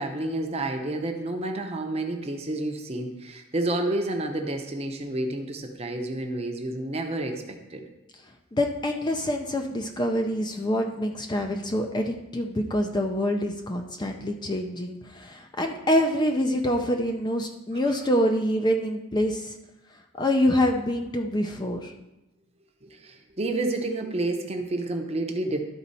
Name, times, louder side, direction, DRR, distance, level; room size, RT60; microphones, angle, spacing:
voice 1, 0.0-7.9 14.6-14.7 17.7-18.0 22.8-25.6, right 2 dB, 30° right, 4 dB, 0.7 m, -30 dB
voice 2, 8.5-19.6 20.2-21.9, left 1 dB, 20° left, 4 dB, 0.5 m, -26 dB
12.5 x 4.1 x 4.1 m, 0.96 s
head